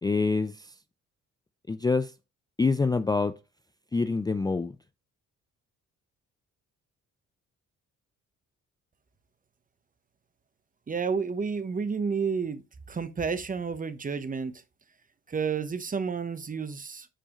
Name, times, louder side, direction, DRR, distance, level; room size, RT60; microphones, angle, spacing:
voice 1, 0.0-0.7 1.7-2.1 2.6-3.3 3.9-4.8, left 4 dB, 15° left, 0.4 m, -26 dB
voice 2, 10.9-12.6 12.9-14.5 15.3-17.1, right 5 dB, 25° right, 0.8 m, -30 dB
8.8 x 4.7 x 3.0 m
cardioid pair, 90°, 30 cm